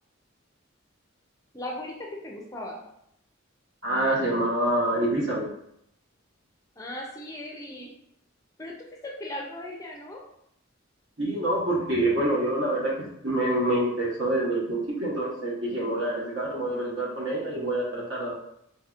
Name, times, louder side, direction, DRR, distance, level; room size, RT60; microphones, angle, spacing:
voice 1, 1.5-2.8 6.8-7.9 8.6-8.7 9.0-10.2, left 1 dB, 15° left, -1 dB, 0.4 m, -37 dB
voice 2, 3.8-5.5 11.2-18.3, right 1 dB, 65° right, -4 dB, 1.2 m, -26 dB
4.1 x 2.8 x 2.4 m, 0.75 s
head